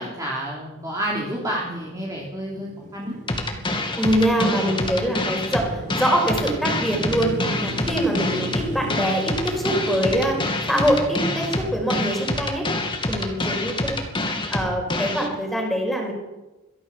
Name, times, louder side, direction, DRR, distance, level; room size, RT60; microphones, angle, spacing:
voice 1, 0.0-3.1, right 1 dB, 15° right, -4 dB, 3.4 m, -29 dB
sound 1, 0.8-14.1, equal, 35° right, 3.2 m, -36 dB
sound 2, 3.3-15.3, left 2 dB, 20° left, 2.7 m, -26 dB
voice 2, 4.0-7.3 7.6-12.7 13.1-14.0 14.5-16.1, equal, ahead, 1 dB, 5.4 m, -24 dB
23.0 x 15.5 x 7.3 m, 1.1 s
head